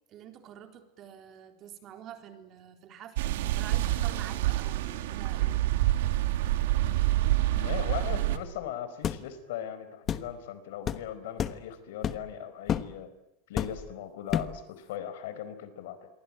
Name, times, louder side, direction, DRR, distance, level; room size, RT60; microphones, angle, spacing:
voice 1, 0.1-5.7, right 10 dB, 35° right, 5 dB, 4.1 m, -47 dB
sound 1, 3.2-8.4, right 15 dB, 90° right, 2.9 m, -27 dB
voice 2, 6.8-7.2 7.5-13.1 13.5-16.1, left 10 dB, 80° left, 13 dB, 4.7 m, -39 dB
sound 2, 9.0-9.2 10.1-10.3 10.9-11.0 11.4-11.6 12.0-12.3 12.7-12.9 13.6-13.9 14.3-14.6, left 9 dB, 25° left, 1.2 m, -30 dB
28.5 x 23.5 x 8.8 m, 0.86 s
supercardioid pair, 160°, 0 cm